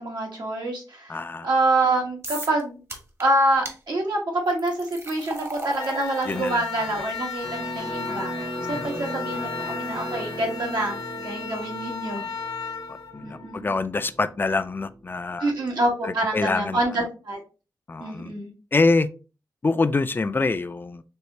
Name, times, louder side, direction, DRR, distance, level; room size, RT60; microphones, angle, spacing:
voice 1, 0.0-1.2 1.4-2.8 3.2-12.2 13.2-13.7 15.4-17.4 18.0-18.5, right 2 dB, 80° right, 1.4 m, -26 dB
voice 2, 1.1-1.5 6.3-7.0 8.6-9.0 12.9-15.5 16.0-16.8 17.9-18.3 18.7-19.1 19.6-21.0, left 3 dB, 30° left, 0.3 m, -25 dB
sound 1, 2.2-2.6 2.9-3.2 3.6-3.8 4.5-11.6, right 2 dB, 40° right, 1.0 m, -40 dB
sound 2, 5.7-13.8, left 5 dB, 70° left, 0.8 m, -35 dB
Electric guitar, 7.4-15.1, right 1 dB, 65° right, 2.2 m, -37 dB
4.5 x 3.1 x 2.8 m
wide cardioid pair, 80°, 7 cm